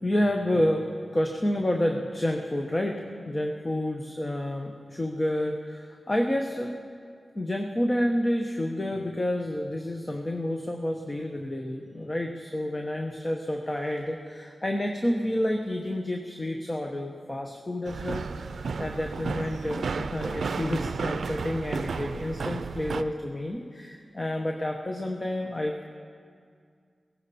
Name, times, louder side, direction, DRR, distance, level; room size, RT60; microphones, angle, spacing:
voice 1, 0.0-0.9 1.1-6.7 7.3-18.5 18.8-25.9, left 1 dB, 30° left, 3 dB, 1.0 m, -29 dB
sound 1, 17.8-23.0, right 5 dB, 85° right, 0.4 m, -32 dB
16.5 x 16.5 x 4.2 m, 2.2 s
wide cardioid pair, 65°, 0 cm